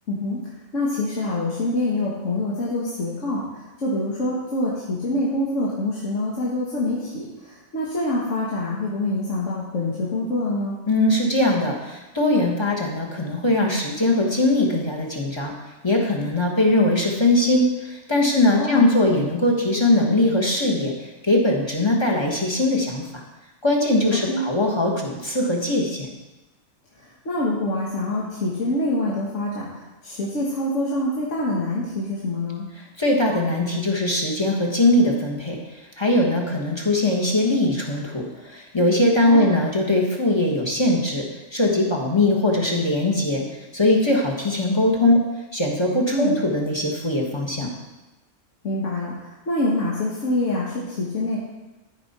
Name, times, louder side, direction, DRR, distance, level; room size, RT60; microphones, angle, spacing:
voice 1, 0.1-0.4 0.7-10.8 18.6-18.8 24.3-24.4 27.0-29.7 30.0-32.7 39.2-39.5 46.1-46.4 48.6-51.4, left 1 dB, 70° left, -5 dB, 1.7 m, -25 dB
voice 2, 10.9-15.5 15.8-20.9 21.2-23.2 23.6-26.1 33.0-35.6 36.0-41.2 41.5-43.4 43.7-45.2 45.5-47.7, left 1 dB, 20° left, -2 dB, 1.2 m, -21 dB
13.0 x 5.3 x 4.2 m, 1.1 s
omnidirectional pair, 1.4 m